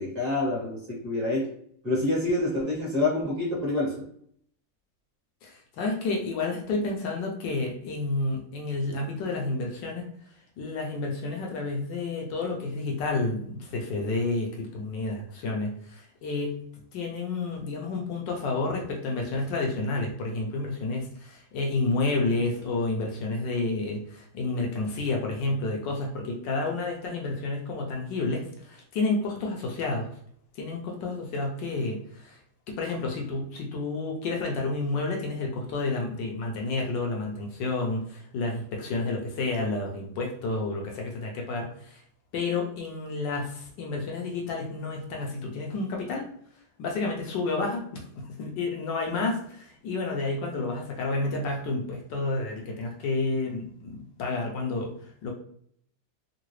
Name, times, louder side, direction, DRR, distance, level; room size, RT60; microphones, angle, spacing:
voice 1, 0.0-1.5 1.8-4.0, left 2 dB, 25° right, -6 dB, 1.1 m, -27 dB
voice 2, 5.4-10.1 10.6-16.6 16.9-30.1 30.6-32.4 32.7-41.7 42.3-46.2 46.8-54.9 55.2-55.3, left 3 dB, 70° left, 0 dB, 1.3 m, -30 dB
3.7 x 2.3 x 3.1 m, 0.64 s
omnidirectional pair, 2.2 m